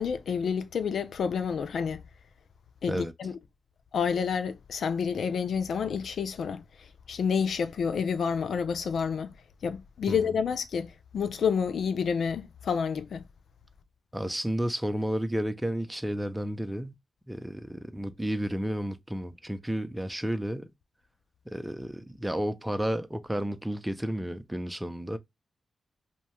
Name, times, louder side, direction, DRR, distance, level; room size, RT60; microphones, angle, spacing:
voice 1, 0.0-2.0 2.8-3.3 3.9-9.3 9.6-13.2, left 6 dB, 75° left, 0.4 m, -29 dB
voice 2, 14.1-16.9 17.3-20.7 21.5-25.2, equal, 10° right, 0.5 m, -32 dB
2.7 x 2.2 x 3.1 m
supercardioid pair, 45°, 0 cm